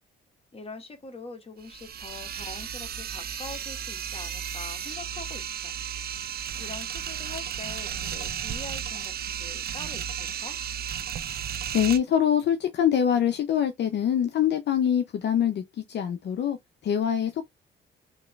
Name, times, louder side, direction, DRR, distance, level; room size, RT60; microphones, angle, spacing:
voice 1, 0.5-5.7 6.5-10.6, left 3 dB, 30° left, 1.4 m, -43 dB
sound 1, 1.6-12.0, right 8 dB, 50° right, 0.6 m, -34 dB
voice 2, 11.7-15.6 15.9-16.6 16.8-17.4, left 9 dB, 60° left, 0.7 m, -24 dB
3.7 x 3.0 x 3.2 m
cardioid pair, 90°, 20 cm